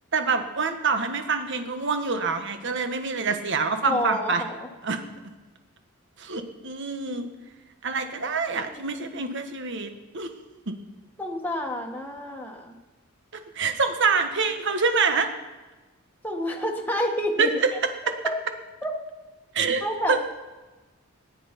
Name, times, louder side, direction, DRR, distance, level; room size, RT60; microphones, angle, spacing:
voice 1, 0.1-4.4 4.8-5.0 6.2-7.3 7.8-10.3 10.7-10.8 13.5-15.3 17.4-17.7 19.5-19.8 20.1-20.2, right 4 dB, 55° right, 7 dB, 1.5 m, -26 dB
voice 2, 3.8-4.7 8.6-9.0 11.2-12.7 16.2-17.5 18.2-18.3 18.8-18.9 19.8-20.2, left 1 dB, 10° left, 0 dB, 1.5 m, -29 dB
19.5 x 10.5 x 5.3 m, 1.2 s
head